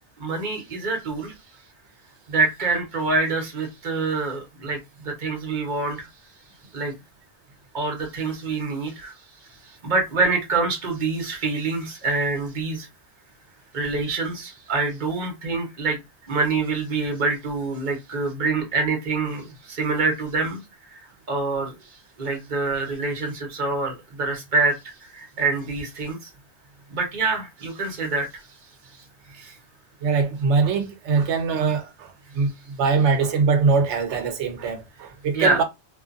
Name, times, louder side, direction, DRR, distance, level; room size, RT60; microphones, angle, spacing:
voice 1, 0.2-1.3 2.3-6.1 6.7-6.9 7.7-12.9 13.7-16.0 16.3-20.6 20.9-26.3 26.9-28.6 28.9-29.6 35.3-35.6, right 3 dB, 45° right, 1.0 m, -26 dB
voice 2, 30.0-35.6, right 5 dB, 80° right, 0.9 m, -22 dB
2.5 x 2.4 x 2.4 m
omnidirectional pair, 1.2 m